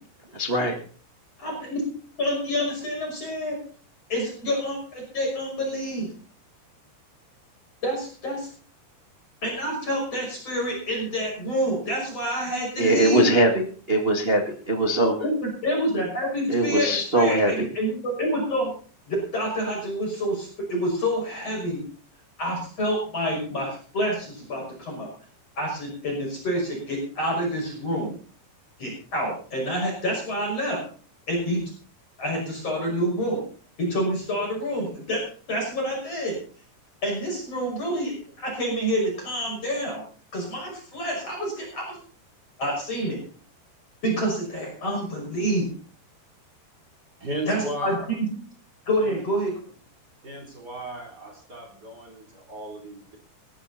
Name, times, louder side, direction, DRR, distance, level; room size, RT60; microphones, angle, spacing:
voice 1, 0.3-0.7 12.8-15.1 16.5-17.7, right 1 dB, 70° right, 2 dB, 0.5 m, -21 dB
voice 2, 1.4-1.8 2.2-3.6 4.1-6.1 7.8-8.5 9.4-13.3 15.2-18.7 19.1-21.8 22.4-25.1 25.6-28.1 28.8-30.8 31.3-31.6 32.2-33.4 33.8-35.2 35.5-36.4 37.0-40.0 40.3-42.0 42.6-43.2 44.0-45.7 47.5-48.3 48.9-49.5, equal, 35° left, -1 dB, 6.8 m, -27 dB
voice 3, 47.2-48.0 49.0-49.2 50.2-53.2, right 1 dB, 25° right, 2 dB, 3.7 m, -35 dB
19.0 x 13.0 x 4.2 m, 0.42 s
omnidirectional pair, 5.1 m